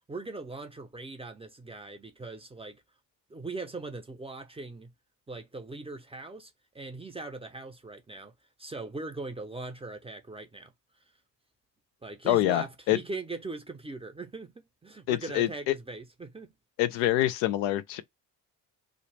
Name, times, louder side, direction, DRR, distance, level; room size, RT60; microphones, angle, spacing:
voice 1, 0.1-2.8 3.3-4.9 5.3-8.3 8.6-10.7 12.0-14.5 14.8-16.5 16.9-17.0, right 3 dB, 10° right, 0.5 m, -40 dB
voice 2, 12.2-13.0 15.1-15.7 16.8-18.0, left 14 dB, 70° left, 0.5 m, -26 dB
2.4 x 2.0 x 3.2 m
hypercardioid pair, 50°, 49 cm